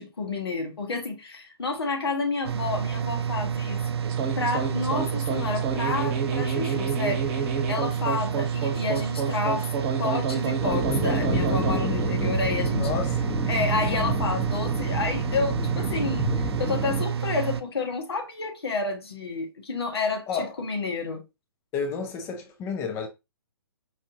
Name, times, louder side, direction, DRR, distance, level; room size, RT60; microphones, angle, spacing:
voice 1, 0.0-3.8 4.4-9.7 10.0-12.9 13.5-21.2, left 4 dB, 75° left, 1.2 m, -30 dB
sound 1, 2.4-17.6, right 8 dB, 80° right, 0.4 m, -29 dB
sound 2, 4.0-12.4, right 6 dB, 35° right, 1.2 m, -30 dB
sound 3, 10.6-17.1, right 1 dB, ahead, 0.9 m, -29 dB
voice 2, 12.8-13.3 20.3-20.5 21.7-23.1, left 5 dB, 20° left, 0.5 m, -31 dB
4.6 x 2.6 x 2.7 m
hypercardioid pair, 135°, 13 cm